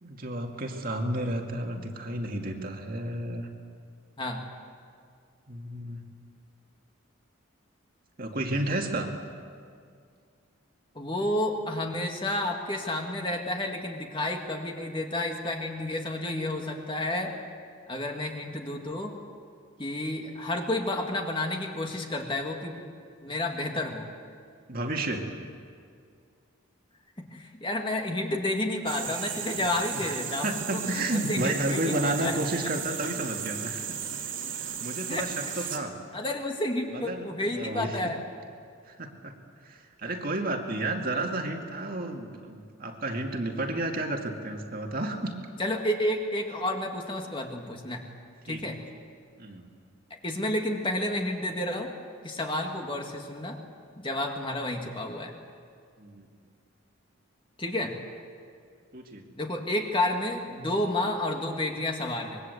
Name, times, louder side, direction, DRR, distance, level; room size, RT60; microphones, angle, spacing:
voice 1, 0.0-3.5 5.5-6.0 8.2-9.1 24.7-25.3 29.5-29.7 29.9-34.0 34.6-36.0 36.9-38.1 38.8-39.4 39.6-45.3 48.5-48.6 49.4-49.7 56.0-56.3 58.9-59.3, right 1 dB, 45° right, 2 dB, 2.2 m, -32 dB
voice 2, 11.0-17.3 17.9-19.2 19.8-22.8 23.2-24.1 27.2-32.4 35.1-35.3 35.5-35.7 36.1-38.2 45.6-48.0 48.4-48.8 50.2-51.9 52.2-53.6 54.0-55.3 57.6-58.0 59.4-62.4, left 1 dB, 25° left, 2 dB, 2.1 m, -30 dB
sound 1, 28.9-35.8, right 8 dB, 65° right, 3.1 m, -35 dB
25.0 x 22.0 x 8.1 m, 2.2 s
head